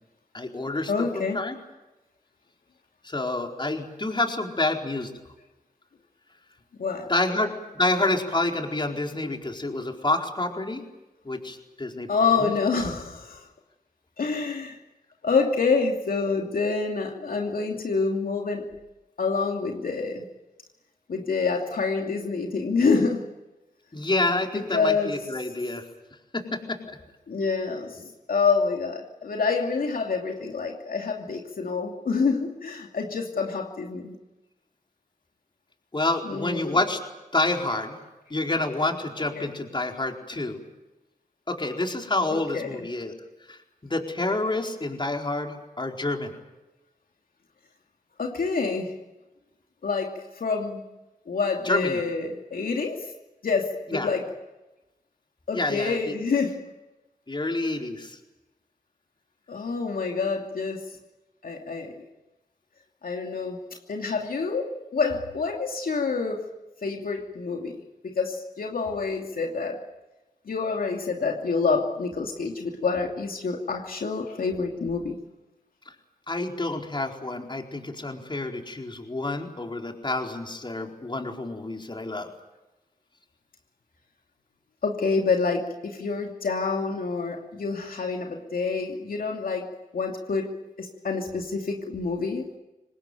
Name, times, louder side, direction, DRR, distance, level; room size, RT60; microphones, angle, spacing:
voice 1, 0.3-1.6 3.0-5.1 7.1-10.8 11.2-12.1 12.4-12.5 23.9-25.8 26.3-27.0 35.9-37.0 37.3-38.0 38.3-40.6 41.5-43.1 43.5-46.3 51.6-52.0 53.9-54.1 55.5-56.0 57.3-58.2 75.9-76.0 76.3-82.3, left 2 dB, 30° left, 2 dB, 4.5 m, -28 dB
voice 2, 0.9-1.4 6.8-7.1 12.1-13.5 14.2-14.8 15.2-18.7 19.2-20.3 21.1-23.3 24.5-25.2 27.3-34.2 36.2-36.8 39.4-39.5 42.3-42.8 48.2-48.9 49.8-50.9 51.3-53.1 53.4-54.3 55.5-56.7 59.5-60.8 61.4-62.0 63.0-63.6 63.9-66.5 66.8-69.8 70.5-75.2 84.8-92.6, left 4 dB, 70° left, 1 dB, 2.8 m, -27 dB
25.0 x 19.5 x 9.3 m, 1.0 s
cardioid pair, 55°, 15 cm